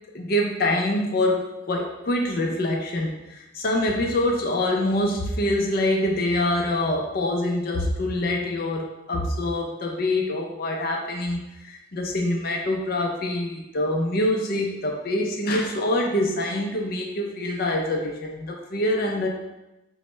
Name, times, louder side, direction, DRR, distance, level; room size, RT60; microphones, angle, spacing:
voice 1, 0.1-19.3, left 1 dB, 50° left, 1 dB, 0.5 m, -25 dB
6.0 x 2.1 x 3.2 m, 0.96 s
head